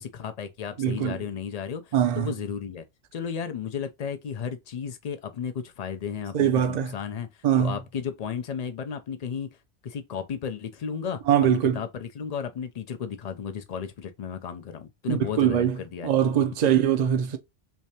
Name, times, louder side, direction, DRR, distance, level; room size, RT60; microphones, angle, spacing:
voice 1, 0.0-2.8 3.1-7.3 7.6-9.6 9.8-16.3 16.6-16.7, left 7 dB, 70° left, 0.3 m, -34 dB
voice 2, 0.8-1.2 1.9-2.3 6.3-7.0 7.4-7.8 11.3-11.8 15.1-17.4, right 9 dB, 50° right, 0.5 m, -23 dB
3.3 x 3.2 x 2.7 m
omnidirectional pair, 1.2 m